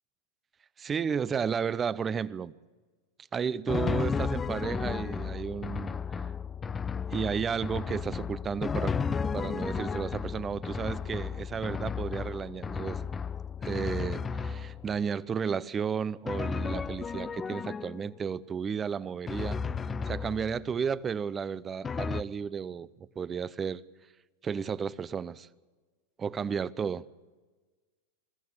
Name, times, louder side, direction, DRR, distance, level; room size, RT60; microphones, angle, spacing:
voice 1, 0.8-2.5 3.3-5.9 7.1-8.9 9.3-13.1 13.6-19.6 20.1-23.8 24.4-25.5 26.2-27.0, right 6 dB, 25° right, 0.7 m, -33 dB
Drum, 3.7-15.0 16.3-18.2 19.3-20.8 21.8-22.2, left 5 dB, 20° left, 0.6 m, -33 dB
22.5 x 14.0 x 9.5 m
hypercardioid pair, 105°, 0 cm